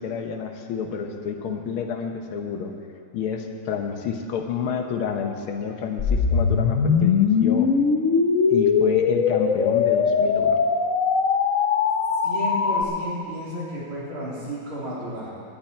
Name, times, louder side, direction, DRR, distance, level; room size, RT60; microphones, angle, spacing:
voice 1, 0.0-2.7 3.1-7.7 8.5-10.6, left 6 dB, 90° left, 4 dB, 1.9 m, -29 dB
sound 1, 6.0-12.8, left 5 dB, 55° left, 0.9 m, -21 dB
voice 2, 12.2-15.3, equal, 85° right, -7 dB, 4.2 m, -32 dB
18.0 x 11.0 x 4.4 m, 2.5 s
omnidirectional pair, 2.3 m